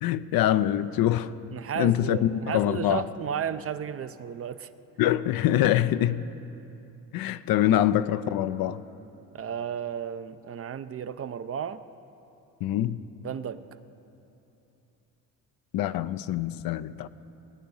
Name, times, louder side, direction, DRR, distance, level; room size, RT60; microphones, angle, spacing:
voice 1, 0.0-1.3 1.8-3.0 5.0-6.2 7.1-8.8 12.6-13.0 15.7-17.1, left 12 dB, 65° left, 13 dB, 0.6 m, -24 dB
voice 2, 1.5-4.7 5.0-5.1 9.3-11.8 13.2-13.6, right 8 dB, 35° right, 12 dB, 0.5 m, -33 dB
19.5 x 9.5 x 5.5 m, 3.0 s
supercardioid pair, 75°, 39 cm